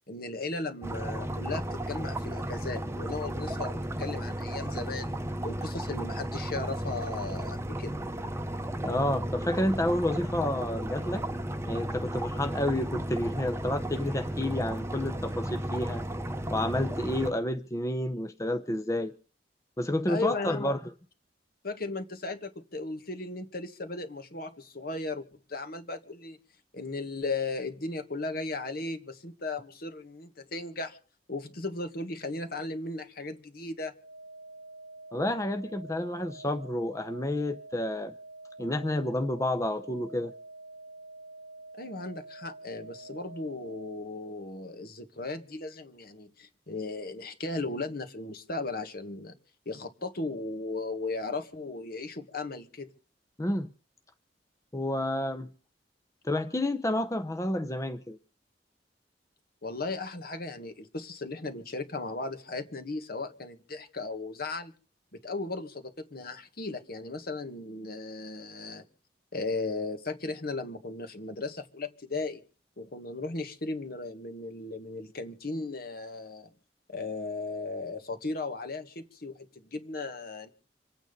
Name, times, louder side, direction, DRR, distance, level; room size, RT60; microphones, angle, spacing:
voice 1, 0.1-5.1 5.4-8.0 20.1-20.8 21.6-26.4 26.7-31.0 31.3-33.9 41.8-49.4 49.7-52.9 59.6-64.7 65.1-68.9 69.3-72.4 72.8-76.5 76.9-80.5, left 3 dB, 60° left, 1.7 m, -36 dB
sound 1, 0.8-17.3, right 1 dB, 15° right, 0.9 m, -34 dB
voice 2, 8.8-11.2 11.7-16.0 16.5-19.1 19.8-20.8 35.1-38.1 38.6-40.3 53.4-53.7 54.7-55.5 56.2-58.2, left 1 dB, 20° left, 0.7 m, -30 dB
sound 2, 34.0-44.0, right 2 dB, 70° right, 1.0 m, -47 dB
26.5 x 8.9 x 5.3 m
head